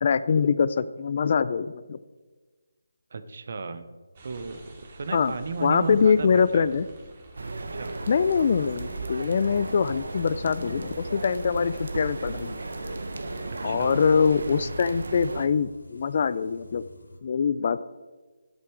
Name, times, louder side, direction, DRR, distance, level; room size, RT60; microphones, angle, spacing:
voice 1, 0.0-2.0 5.1-5.3 5.6-6.9 8.1-12.6 13.6-16.8 17.2-17.8, left 6 dB, 45° left, 16 dB, 0.4 m, -23 dB
voice 2, 3.1-3.9 4.2-6.6 7.6-7.9 13.4-14.0, right 4 dB, 50° right, 10 dB, 0.9 m, -34 dB
sound 1, 4.2-14.5, right 2 dB, 35° right, 2.4 m, -50 dB
sound 2, 7.4-15.5, right 2 dB, 70° right, 1.2 m, -35 dB
sound 3, 8.1-17.2, left 2 dB, 90° left, 1.8 m, -47 dB
11.5 x 8.4 x 4.7 m, 1.3 s
figure-of-eight pair, 160°, 0 cm